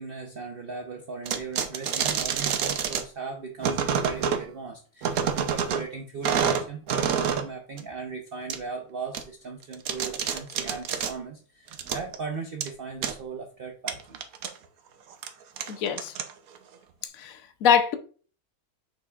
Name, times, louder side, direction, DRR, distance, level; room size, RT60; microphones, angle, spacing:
voice 1, 0.0-14.2, right 5 dB, 45° right, 0.8 m, -38 dB
sound 1, 1.2-3.0 3.6-4.4 5.0-5.9 6.2-7.5 7.8-7.9 8.5-8.6 9.1-9.2 9.6-11.1 11.7-12.2 12.6-12.7 13.0-13.1 13.9-14.5 15.1-15.3 15.6-16.6, right 7 dB, 70° right, 1.2 m, -27 dB
voice 2, 15.7-16.1 17.1-18.0, left 7 dB, 70° left, 1.1 m, -24 dB
6.9 x 5.7 x 2.4 m
omnidirectional pair, 1.6 m